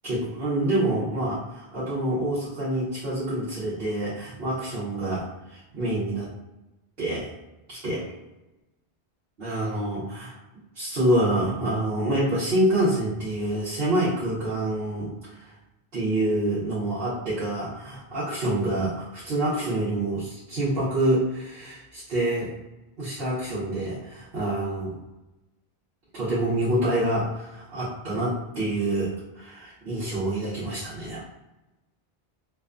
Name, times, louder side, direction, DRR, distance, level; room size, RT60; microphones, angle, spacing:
voice 1, 0.0-6.3 7.0-7.3 7.7-8.0 9.4-10.3 10.7-15.5 15.9-22.5 23.0-24.9 26.1-31.2, right 1 dB, 70° right, -11 dB, 1.0 m, -27 dB
2.6 x 2.2 x 2.4 m, 0.99 s
omnidirectional pair, 1.0 m